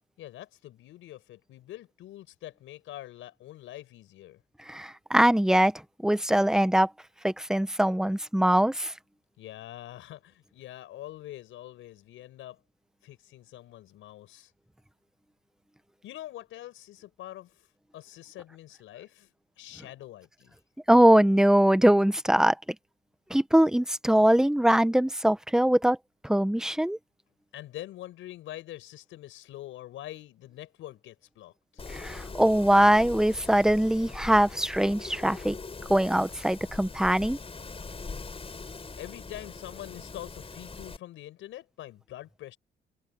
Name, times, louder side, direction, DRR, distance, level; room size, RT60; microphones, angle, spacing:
voice 1, 0.2-4.4 9.4-12.6 13.0-14.5 16.0-20.6 26.9-27.0 27.5-31.8 39.0-42.6, left 14 dB, 85° left, 6.0 m, -44 dB
voice 2, 4.7-5.7 6.0-6.9 7.2-8.9 20.9-22.5 23.3-26.0 26.2-27.0 31.9-35.5 35.9-37.4, right 1 dB, 5° right, 1.3 m, -22 dB
Wind, 31.8-41.0, left 4 dB, 30° left, 4.7 m, -42 dB
open air
cardioid pair, 90°, 20 cm